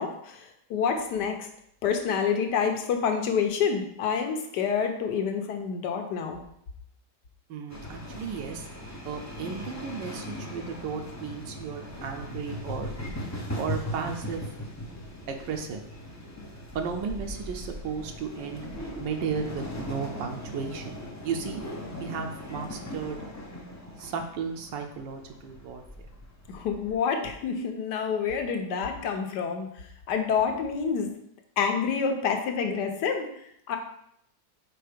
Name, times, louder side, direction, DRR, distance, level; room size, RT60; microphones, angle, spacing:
voice 1, 0.0-1.5 1.8-6.4 26.5-29.7 30.1-31.1 31.6-33.8, left 6 dB, 70° left, 5 dB, 1.4 m, -28 dB
voice 2, 7.5-8.7 9.0-12.9 13.6-14.4 15.3-15.8 16.7-18.7 19.0-21.0 21.2-21.6 22.0-23.2 24.0-25.8, right 6 dB, 80° right, 4 dB, 1.4 m, -34 dB
sound 1, 7.7-26.9, left 1 dB, 25° left, 0.3 m, -39 dB
4.7 x 4.5 x 5.1 m, 0.72 s
omnidirectional pair, 1.9 m